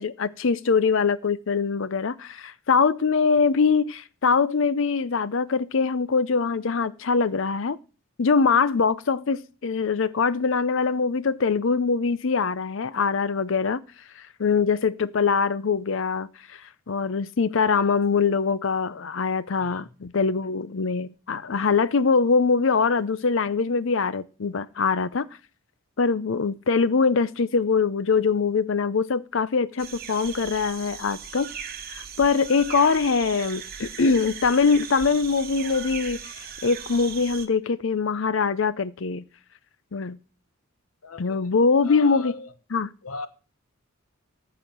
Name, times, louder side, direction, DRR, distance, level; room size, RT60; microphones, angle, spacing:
voice 1, 0.0-7.8 8.2-13.8 14.4-16.6 16.9-25.3 26.0-31.5 31.9-39.2 39.9-40.2 41.2-42.3 42.7-42.9, left 5 dB, 60° left, 0.6 m, -23 dB
sound 1, 29.8-37.5, right 7 dB, 45° right, 1.2 m, -38 dB
voice 2, 41.0-41.5 41.8-42.5 43.0-43.3, left 4 dB, 85° left, 1.2 m, -39 dB
14.5 x 4.9 x 7.1 m
head